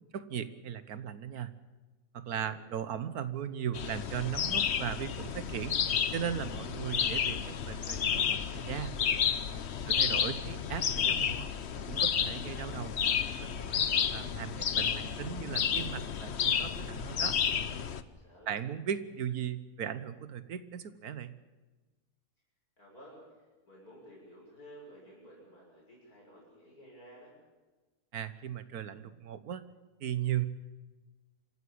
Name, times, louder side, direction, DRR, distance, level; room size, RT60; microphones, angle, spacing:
voice 1, 0.1-1.5 2.1-5.8 6.1-8.9 9.8-12.9 13.4-13.8 14.1-17.4 18.5-21.4 28.1-29.6 30.0-30.5, right 9 dB, 80° right, 13 dB, 1.6 m, -37 dB
voice 2, 2.2-2.6 9.7-10.1 18.2-18.6 22.8-27.3, equal, 75° left, -3 dB, 7.0 m, -54 dB
sound 1, 3.7-18.0, left 7 dB, 50° left, 1.0 m, -31 dB
26.0 x 14.0 x 8.6 m, 1.2 s
omnidirectional pair, 1.6 m